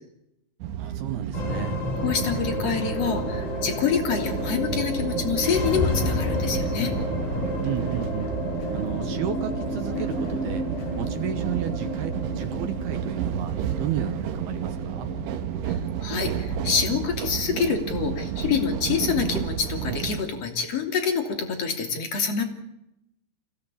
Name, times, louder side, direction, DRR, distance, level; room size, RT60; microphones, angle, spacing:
sound 1, 0.6-20.2, right 9 dB, 90° right, 3.9 m, -31 dB
voice 1, 0.8-1.8 7.6-8.3 8.7-10.7 10.9-15.1, right 11 dB, 70° right, 8 dB, 2.6 m, -32 dB
sound 2, 1.3-19.8, left 2 dB, 70° left, 7.6 m, -32 dB
voice 2, 2.0-6.9 15.7-22.4, left 6 dB, 35° left, 5 dB, 3.6 m, -26 dB
sound 3, 2.9-6.8 7.2-11.6, left 3 dB, 55° left, 8.7 m, -48 dB
27.5 x 17.0 x 8.6 m, 0.85 s
omnidirectional pair, 5.4 m